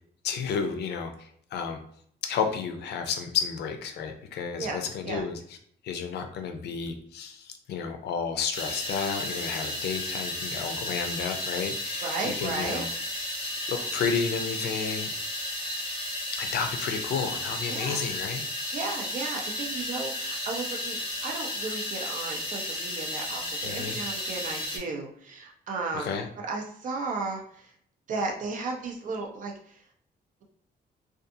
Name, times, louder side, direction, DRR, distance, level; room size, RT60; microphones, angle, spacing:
voice 1, 0.2-1.8 2.2-5.6 5.8-12.9 13.7-15.1 16.3-18.5 23.6-24.0 25.9-26.3, left 6 dB, 85° left, 6 dB, 0.4 m, -32 dB
voice 2, 4.6-5.2 12.0-12.9 17.7-18.0 18.7-27.7 28.1-29.8, right 3 dB, 50° right, 1 dB, 0.5 m, -34 dB
sound 1, 8.5-24.8, left 1 dB, 30° left, 0.9 m, -33 dB
2.5 x 2.3 x 2.6 m, 0.64 s
wide cardioid pair, 175°, 17 cm